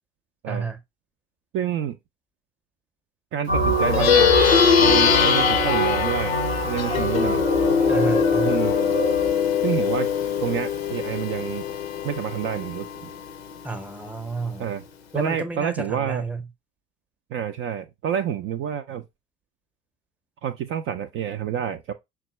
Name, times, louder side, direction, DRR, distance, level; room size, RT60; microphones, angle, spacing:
voice 1, 0.5-0.8 7.9-8.6 13.6-14.7 15.1-16.4, right 3 dB, 5° right, 0.7 m, -31 dB
voice 2, 1.5-2.0 3.3-4.4 4.8-6.4 6.6-7.4 8.4-8.8 9.6-10.1 10.4-11.6 12.0-13.1 14.6-14.8 15.1-16.2 17.3-19.0 20.4-21.9, right 9 dB, 45° right, 0.4 m, -28 dB
sound 1, 3.5-9.3, right 2 dB, 85° right, 0.9 m, -26 dB
Plucked string instrument, 3.8-13.5, left 7 dB, 85° left, 0.5 m, -22 dB
Wind instrument woodwind instrument, 3.8-8.8, left 5 dB, 15° left, 0.4 m, -32 dB
5.8 x 2.3 x 3.0 m
figure-of-eight pair, 55°, 30 cm